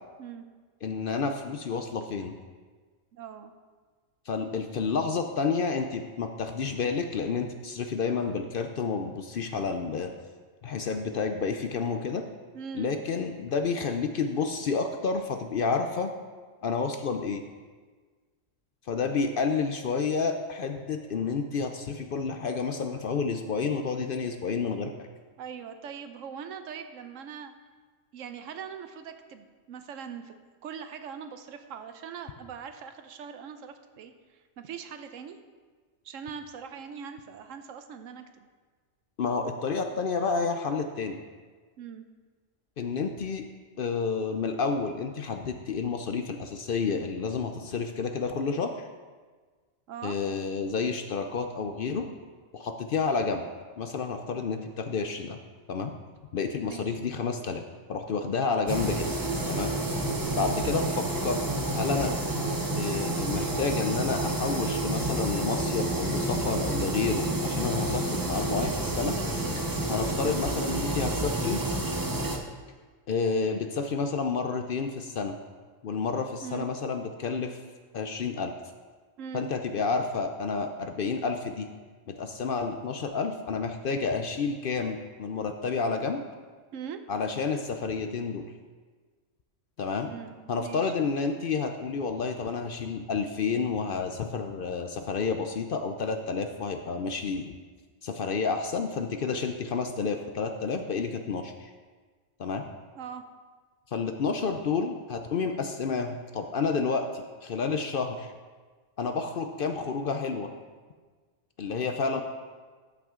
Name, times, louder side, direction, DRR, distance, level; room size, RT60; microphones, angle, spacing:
voice 1, 0.8-2.4 4.3-10.1 10.6-12.2 12.7-16.1 16.6-17.4 18.9-24.9 39.2-41.2 42.8-43.4 43.8-48.7 50.0-52.1 52.5-53.4 53.8-55.4 55.7-55.9 56.3-57.6 57.9-59.1 59.5-59.7 60.4-61.4 61.7-62.1 62.8-69.1 69.9-71.6 73.1-75.4 75.8-77.6 77.9-78.5 79.3-81.7 82.1-86.2 87.1-88.5 89.8-90.1 90.5-97.5 98.0-101.7 102.4-102.6 103.9-108.3 109.0-110.5 111.6-112.2, left 5 dB, 55° left, 6 dB, 0.6 m, -30 dB
voice 2, 3.1-3.5 12.5-12.9 25.4-27.5 28.1-35.4 36.0-38.5 41.8-42.0 49.9-50.2 56.6-57.0 60.3-60.5 76.4-76.7 79.2-79.4 86.7-87.0 90.1-90.9 102.9-103.2, right 7 dB, 80° right, 8 dB, 1.1 m, -41 dB
sound 1, 58.7-72.4, right 1 dB, 20° right, 0.6 m, -29 dB
13.0 x 5.9 x 3.7 m, 1.4 s
omnidirectional pair, 1.3 m